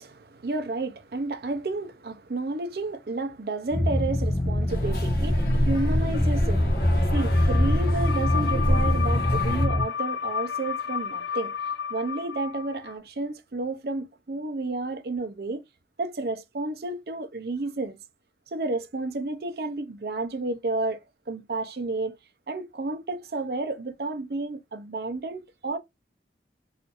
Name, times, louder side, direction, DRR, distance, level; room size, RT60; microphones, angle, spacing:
voice 1, 0.0-6.7 7.0-11.5 11.9-15.6 16.0-18.0 18.5-21.0 21.3-22.1 22.5-25.8, right 2 dB, 60° right, 0.5 m, -31 dB
sound 1, 3.7-9.8, left 1 dB, 25° left, 0.5 m, -24 dB
sound 2, 4.7-9.7, equal, 60° left, 1.0 m, -29 dB
sound 3, 7.1-12.9, left 8 dB, 90° left, 0.4 m, -32 dB
4.2 x 2.5 x 2.4 m
head